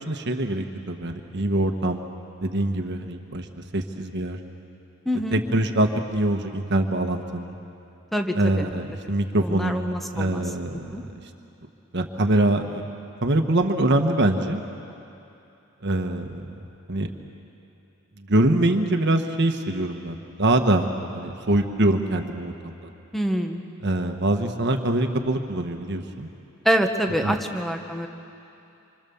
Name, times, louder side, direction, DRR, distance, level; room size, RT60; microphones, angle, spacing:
voice 1, 0.1-2.0 2.4-3.5 3.7-4.4 5.3-7.6 8.3-11.1 11.9-12.8 13.2-14.6 15.8-16.5 16.9-17.1 18.3-20.9 21.1-22.7 23.8-26.3 27.2-27.4, right 1 dB, 55° right, 5 dB, 1.3 m, -24 dB
voice 2, 5.0-5.4 8.1-8.7 9.4-10.4 10.9-11.0 23.1-23.6 26.6-28.1, equal, ahead, 4 dB, 1.3 m, -25 dB
27.0 x 25.0 x 7.1 m, 2.8 s
head